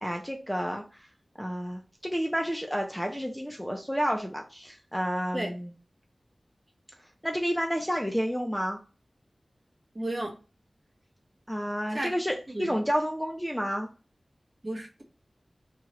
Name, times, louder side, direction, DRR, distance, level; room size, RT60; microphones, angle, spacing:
voice 1, 0.0-1.1 1.4-5.7 7.2-8.8 11.5-13.9, equal, 5° left, 2 dB, 0.4 m, -30 dB
voice 2, 9.9-10.3 11.9-12.1 12.5-12.7 14.6-15.0, right 1 dB, 35° right, 1 dB, 0.9 m, -33 dB
2.9 x 2.3 x 2.9 m, 0.34 s
wide cardioid pair, 75°, 0 cm